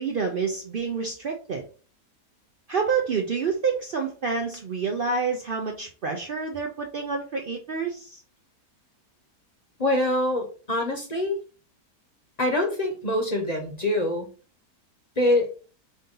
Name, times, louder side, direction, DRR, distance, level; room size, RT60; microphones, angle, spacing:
voice 1, 0.0-1.6 2.7-8.2, right 5 dB, 85° right, 2 dB, 0.4 m, -28 dB
voice 2, 9.8-11.4 12.4-14.3 15.2-15.5, left 1 dB, 30° left, 2 dB, 0.9 m, -24 dB
4.8 x 2.7 x 3.7 m, 0.37 s
omnidirectional pair, 1.7 m